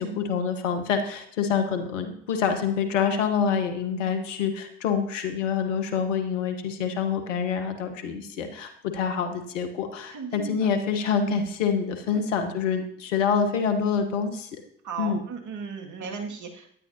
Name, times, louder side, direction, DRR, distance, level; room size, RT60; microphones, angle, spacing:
voice 1, 0.0-14.5 15.0-15.2, left 6 dB, 90° left, 6 dB, 1.2 m, -26 dB
voice 2, 10.1-10.7 12.1-12.2 14.8-16.7, right 5 dB, 55° right, 2 dB, 2.2 m, -36 dB
12.0 x 9.7 x 2.8 m, 0.67 s
hypercardioid pair, 55°, 36 cm